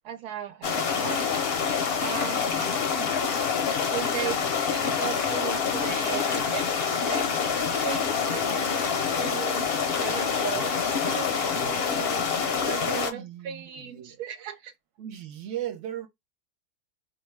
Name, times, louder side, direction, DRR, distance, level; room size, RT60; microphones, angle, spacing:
voice 1, 0.0-1.2 2.0-3.1 3.9-6.7 7.1-12.3 12.6-14.7, right 10 dB, 85° right, 1.1 m, -37 dB
sound 1, 0.6-13.1, left 6 dB, 60° left, 0.6 m, -26 dB
voice 2, 12.8-14.5 15.0-16.1, right 11 dB, 60° right, 1.0 m, -37 dB
2.6 x 2.2 x 3.2 m
omnidirectional pair, 1.6 m